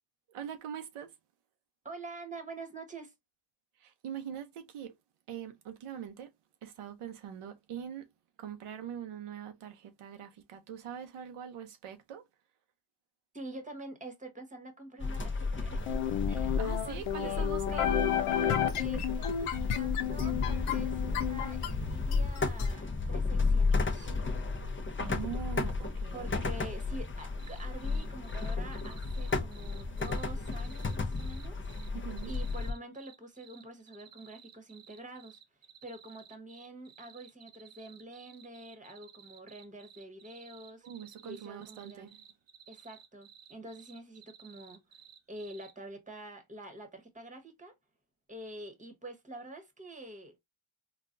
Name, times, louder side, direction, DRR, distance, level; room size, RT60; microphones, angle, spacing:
voice 1, 0.3-1.1 3.8-4.9 5.3-6.3 6.6-8.1 8.4-12.2 16.6-18.0 25.0-26.4 31.9-32.3 40.8-42.2, right 8 dB, 85° right, 0.7 m, -43 dB
voice 2, 1.8-3.1 13.3-17.9 18.8-24.2 26.1-32.0 32.2-40.9 41.2-42.1 42.7-45.0 45.3-47.7 48.3-50.4, right 2 dB, 15° right, 1.1 m, -47 dB
sound 1, 15.0-32.7, left 3 dB, 25° left, 0.7 m, -33 dB
sound 2, 15.9-22.7, left 10 dB, 90° left, 0.6 m, -32 dB
sound 3, 27.2-45.7, right 8 dB, 60° right, 0.9 m, -56 dB
3.9 x 2.3 x 2.4 m
cardioid pair, 60°, 50 cm